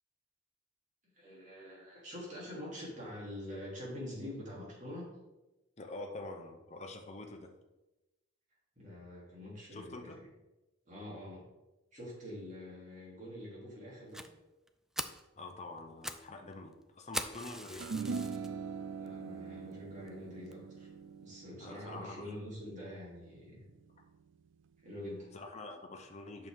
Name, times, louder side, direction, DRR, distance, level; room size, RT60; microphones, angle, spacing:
voice 1, 1.2-5.1 8.8-10.1 10.8-11.4 11.9-14.2 19.0-20.9 21.2-23.6 24.8-25.3, left 1 dB, 40° right, -5 dB, 3.0 m, -45 dB
voice 2, 5.8-7.5 9.7-10.2 15.4-18.0 21.6-22.3 25.3-26.5, left 2 dB, 35° left, 3 dB, 0.9 m, -46 dB
Fire, 14.1-14.3 14.7-14.8 15.0-15.3 15.8-16.3 16.5-16.6 17.1-18.5 19.1-19.2 19.7-19.8 20.1-20.2 20.5-20.6, right 1 dB, 5° right, 0.3 m, -40 dB
sound 1, 17.8-24.3, right 5 dB, 70° right, 0.4 m, -42 dB
8.3 x 6.4 x 3.7 m, 1.0 s
head